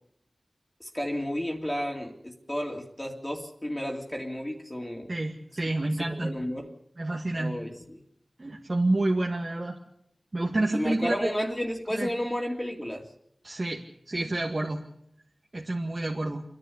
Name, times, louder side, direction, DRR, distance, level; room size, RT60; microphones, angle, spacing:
voice 1, 0.8-5.1 6.2-6.7 7.3-8.0 10.7-13.1, equal, 20° left, 0 dB, 2.6 m, -32 dB
voice 2, 5.1-6.4 7.0-7.6 8.4-9.8 10.3-11.3 11.9-12.1 13.4-14.8 15.5-16.4, right 2 dB, 50° right, -1 dB, 2.1 m, -29 dB
28.0 x 11.0 x 8.5 m, 0.74 s
cardioid pair, 40°, 0 cm